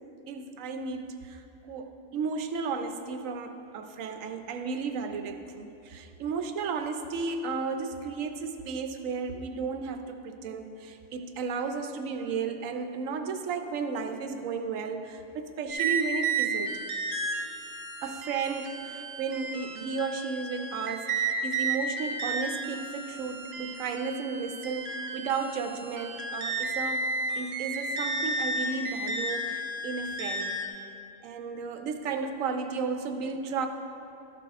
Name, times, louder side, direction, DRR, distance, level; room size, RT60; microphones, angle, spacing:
voice 1, 0.3-16.8 18.0-27.1 27.3-30.9 31.2-33.7, right 5 dB, 90° right, 7 dB, 1.0 m, -34 dB
sound 1, 15.7-30.7, right 3 dB, 55° right, 1.1 m, -33 dB
12.5 x 6.0 x 3.5 m, 2.9 s
omnidirectional pair, 1.3 m